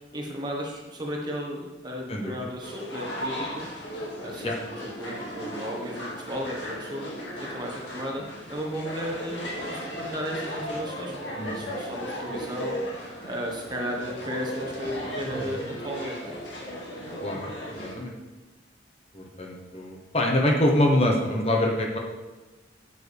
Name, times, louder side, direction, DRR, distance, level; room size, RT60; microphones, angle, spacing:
voice 1, 0.1-3.7 4.2-7.1 7.4-8.2 8.5-9.4 9.7-12.8 13.2-16.4, equal, 25° right, -1 dB, 1.3 m, -34 dB
voice 2, 2.1-2.5 4.4-4.6 11.4-11.9 17.2-18.2 19.1-22.0, left 1 dB, 35° left, 0 dB, 1.1 m, -25 dB
sound 1, 2.6-17.9, equal, 80° left, 2.2 m, -36 dB
10.5 x 7.2 x 3.5 m, 1.2 s
head